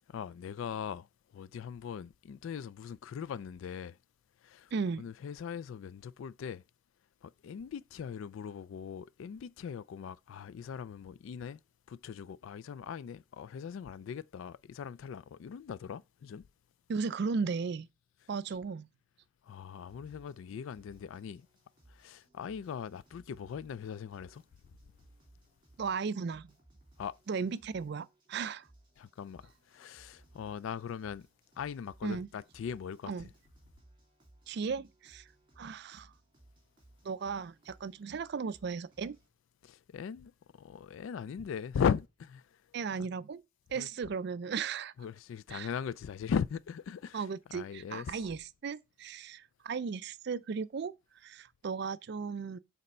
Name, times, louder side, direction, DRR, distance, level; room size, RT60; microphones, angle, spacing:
voice 1, 0.1-1.1 1.3-4.0 4.4-4.7 5.0-6.6 7.2-11.6 11.9-16.4 19.4-21.5 21.9-24.4 27.0-27.1 29.0-31.3 31.6-33.3 39.6-40.3 40.6-42.4 43.0-43.1 43.8-43.9 45.0-47.3 47.5-48.2, left 7 dB, 70° left, 0.3 m, -39 dB
voice 2, 4.7-5.0 16.9-17.9 18.3-18.9 25.8-26.5 27.3-28.7 32.0-32.3 33.1-33.3 34.5-35.2 35.6-36.1 37.0-39.2 42.7-43.4 43.7-44.9 45.5-45.7 47.1-50.9 51.2-52.6, right 5 dB, 55° right, 0.4 m, -36 dB
sound 1, 19.9-39.3, right 1 dB, 25° right, 3.3 m, -63 dB
6.5 x 4.1 x 5.4 m
head